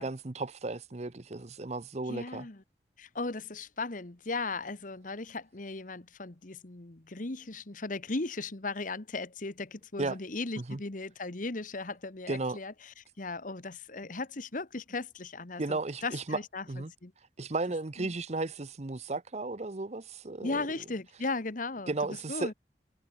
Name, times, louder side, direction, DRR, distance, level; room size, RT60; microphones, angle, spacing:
voice 1, 0.0-2.5 10.0-10.2 10.6-10.8 12.3-12.6 15.6-16.4 16.7-16.9 17.4-20.7 21.9-22.5, right 3 dB, 40° right, 0.8 m, -34 dB
voice 2, 2.1-2.6 3.0-16.6 17.0-17.1 18.0-18.1 20.4-22.5, left 3 dB, 45° left, 1.3 m, -37 dB
head